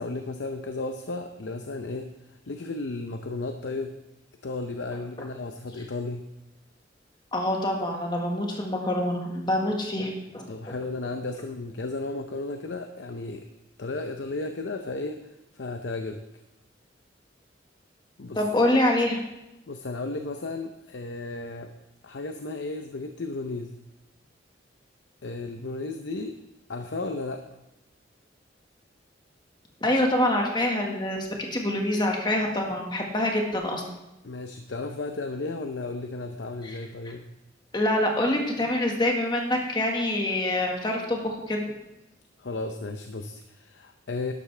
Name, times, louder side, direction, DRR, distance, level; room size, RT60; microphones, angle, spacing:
voice 1, 0.0-3.9 4.4-6.2 10.5-13.5 13.8-15.2 15.5-16.2 18.2-18.4 19.7-21.7 22.0-23.7 25.2-26.4 26.7-27.4 34.2-37.2 42.4-44.3, left 3 dB, 75° left, 6 dB, 0.7 m, -34 dB
voice 2, 7.3-10.7 18.3-19.2 29.8-33.8 36.6-36.8 37.7-41.6, left 1 dB, 25° left, 1 dB, 1.6 m, -26 dB
12.0 x 11.5 x 3.3 m, 0.93 s
head